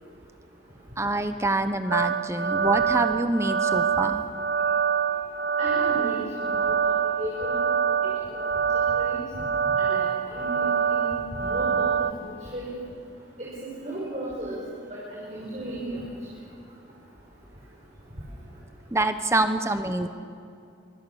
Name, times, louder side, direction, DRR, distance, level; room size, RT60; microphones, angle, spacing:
voice 1, 1.0-4.2 18.9-20.1, right 2 dB, 15° right, 9 dB, 0.8 m, -26 dB
sound 1, 1.9-12.1, right 7 dB, 55° right, 0.6 m, -25 dB
voice 2, 5.6-6.2 6.5-6.9 7.2-7.6 8.0-8.4 9.0-9.2 9.8-11.0 11.4-11.9 12.5-12.7 13.4-13.5 13.8-14.6 14.9-16.0, right 1 dB, 35° right, -6 dB, 5.5 m, -34 dB
25.5 x 25.0 x 7.1 m, 2.5 s
head